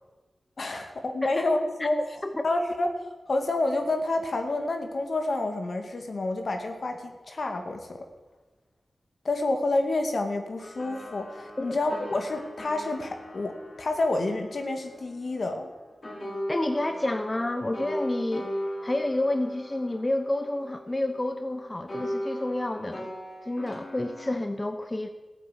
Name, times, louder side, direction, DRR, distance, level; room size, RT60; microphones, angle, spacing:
voice 1, 0.6-2.0 2.4-2.9 3.3-8.0 9.2-15.7, left 2 dB, 65° left, 4 dB, 2.2 m, -28 dB
sound 1, 10.6-15.8 16.0-21.5 21.9-24.4, equal, 45° left, 4.3 m, -38 dB
voice 2, 16.5-18.5 18.8-23.1 23.4-25.1, left 1 dB, 30° left, 8 dB, 1.0 m, -29 dB
14.5 x 8.6 x 8.5 m, 1.2 s
cardioid pair, 40°, 0 cm